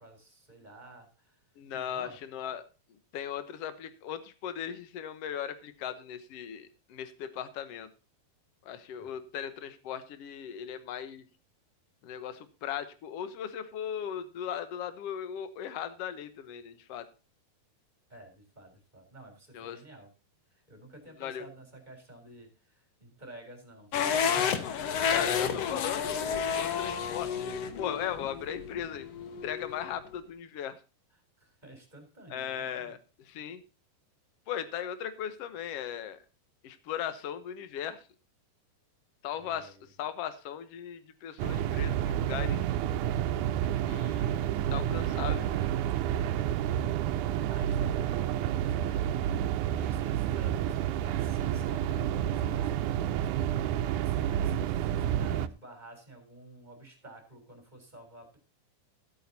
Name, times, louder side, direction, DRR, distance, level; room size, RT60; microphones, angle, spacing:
voice 1, 0.0-1.4 1.9-2.2 9.0-9.1 18.1-20.1 20.5-26.0 31.4-33.0 39.3-39.9 46.4-49.1 49.5-58.4, right 1 dB, 10° right, 2 dB, 3.8 m, -51 dB
voice 2, 1.6-2.6 3.1-7.9 8.6-11.2 12.0-17.0 19.5-19.8 21.2-21.5 24.8-29.1 29.4-30.8 32.3-33.0 33.2-33.6 34.5-36.2 36.6-38.1 39.2-42.7 43.8-45.7, left 9 dB, 85° left, 12 dB, 1.3 m, -38 dB
sound 1, 23.9-30.0, left 7 dB, 65° left, 1.6 m, -31 dB
sound 2, 41.4-55.5, right 11 dB, 80° right, 1.8 m, -29 dB
15.0 x 8.7 x 4.1 m, 0.33 s
omnidirectional pair, 4.2 m